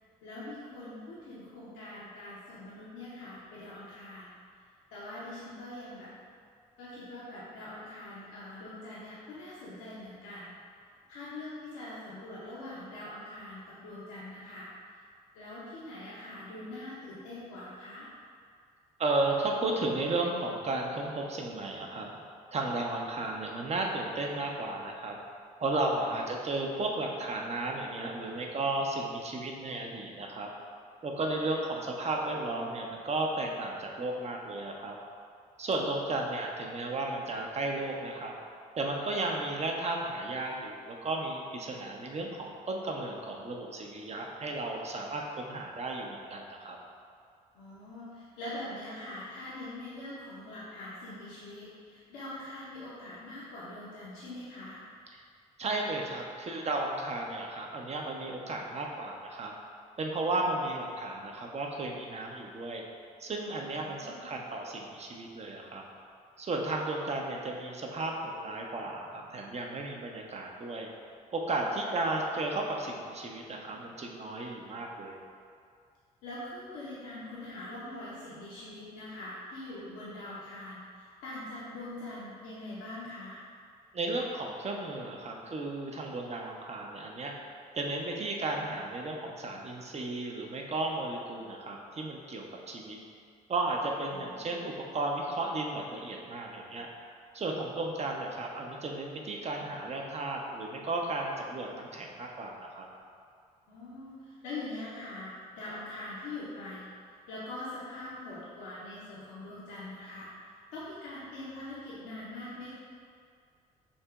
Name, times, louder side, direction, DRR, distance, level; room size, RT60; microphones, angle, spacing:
voice 1, 0.2-4.3 4.9-6.1 6.8-10.5 11.1-14.7 15.3-18.1 47.5-54.8 63.8-64.3 71.8-71.9 76.2-83.4 94.1-94.6 103.7-106.9 107.3-110.3 110.7-112.7, left 1 dB, 75° left, -9 dB, 0.8 m, -43 dB
voice 2, 19.0-22.1 22.5-25.2 25.6-30.5 31.0-35.0 35.6-38.3 38.8-46.8 55.1-55.2 55.6-59.5 60.0-62.8 63.2-65.8 66.4-70.9 71.3-75.2 83.9-87.3 87.7-93.0 93.5-96.9 97.3-102.9, right 2 dB, 35° right, 0 dB, 0.7 m, -34 dB
6.4 x 2.8 x 2.3 m, 2.3 s
hypercardioid pair, 45°, 19 cm